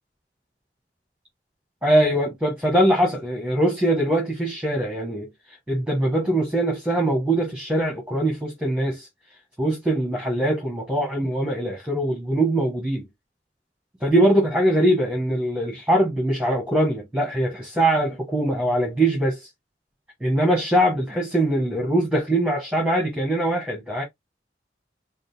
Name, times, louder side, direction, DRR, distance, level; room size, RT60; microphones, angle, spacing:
voice 1, 1.8-5.3 5.7-9.1 9.6-13.0 14.0-19.5 20.2-24.0, right 1 dB, 5° right, 1.3 m, -22 dB
5.0 x 2.1 x 3.3 m
head